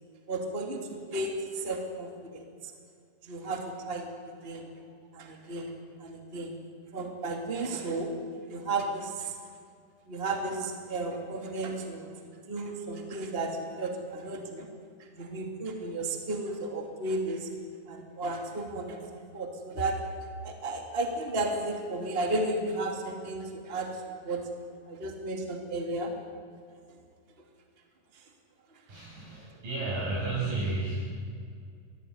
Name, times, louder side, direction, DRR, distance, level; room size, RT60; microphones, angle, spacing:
voice 1, 0.3-2.4 3.2-4.1 4.4-4.7 5.1-5.7 6.0-6.5 6.9-8.1 8.5-9.4 10.1-12.1 12.5-14.7 15.2-17.5 17.9-20.0 20.4-24.4 24.9-26.1, right 2 dB, 20° right, 3 dB, 2.5 m, -33 dB
voice 2, 28.9-31.3, right 2 dB, 70° right, -6 dB, 7.9 m, -32 dB
24.0 x 19.0 x 9.6 m, 2.2 s
omnidirectional pair, 4.0 m